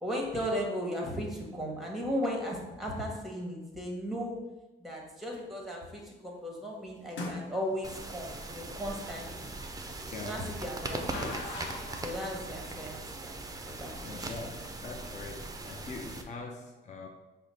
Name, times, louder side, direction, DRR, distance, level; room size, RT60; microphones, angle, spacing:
voice 1, 0.0-4.4 4.8-9.5 10.2-11.6 12.0-13.3 13.7-14.3, equal, ahead, 0 dB, 1.0 m, -36 dB
sound 1, 5.3-5.6 7.1-7.9 10.4-12.3, left 2 dB, 65° left, 0.8 m, -41 dB
sound 2, 7.8-16.2, right 2 dB, 20° right, 0.4 m, -40 dB
voice 2, 10.1-10.5 14.0-17.1, left 3 dB, 35° left, 2 dB, 0.5 m, -43 dB
4.8 x 2.1 x 4.1 m, 1.1 s
cardioid pair, 90°, 20 cm